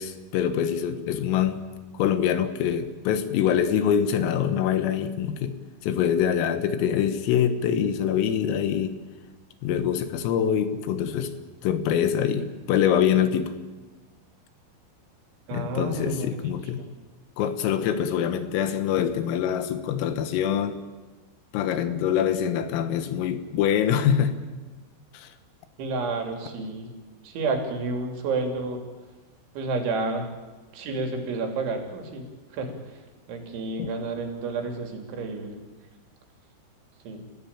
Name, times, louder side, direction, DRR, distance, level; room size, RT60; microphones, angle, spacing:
voice 1, 0.0-9.0 9.6-11.3 11.6-13.5 15.5-16.8 17.4-20.8 21.5-24.4 25.1-25.3 33.8-33.9, left 9 dB, 90° left, 10 dB, 4.1 m, -25 dB
voice 2, 15.5-16.5 16.8-16.9 25.8-26.9 27.2-28.8 29.5-30.3 30.7-32.2 32.5-33.0 33.3-35.6 37.0-37.3, right 3 dB, 70° right, 4 dB, 5.2 m, -30 dB
30.0 x 15.5 x 8.8 m, 1.3 s
omnidirectional pair, 5.8 m